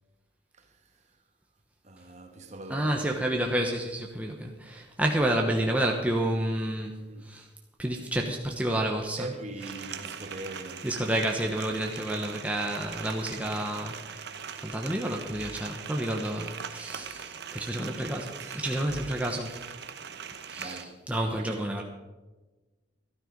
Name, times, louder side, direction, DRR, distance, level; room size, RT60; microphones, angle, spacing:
voice 1, 0.6-0.9 1.8-2.9 7.0-7.3 9.2-10.9 15.3-15.4 16.7-17.2 18.4-18.6 19.1-19.2 20.6-21.0 21.4-21.8, right 2 dB, 40° right, 1.6 m, -43 dB
voice 2, 2.7-7.0 7.2-7.5 7.8-9.3 10.8-14.2 14.6-19.7 20.5-21.8, right 1 dB, 10° right, 1.1 m, -30 dB
sound 1, 9.6-20.8, right 7 dB, 60° right, 1.0 m, -41 dB
13.5 x 12.5 x 5.2 m
head